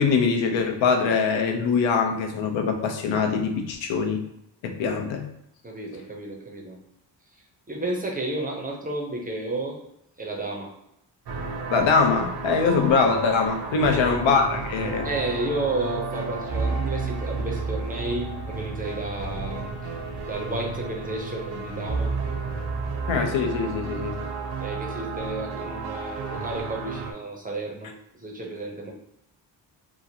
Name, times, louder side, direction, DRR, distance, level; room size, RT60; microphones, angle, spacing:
voice 1, 0.0-4.2 4.6-5.3 11.7-15.1 23.1-24.2, left 5 dB, 90° left, 4 dB, 0.6 m, -23 dB
voice 2, 5.6-6.8 7.7-9.8 10.2-10.7 13.8-14.4 15.0-19.7 20.2-22.1 24.6-28.9, right 2 dB, 20° right, 0 dB, 0.5 m, -32 dB
sound 1, 11.3-27.1, right 4 dB, 60° right, 0.6 m, -31 dB
2.9 x 2.4 x 2.7 m, 0.78 s
wide cardioid pair, 125°, 44 cm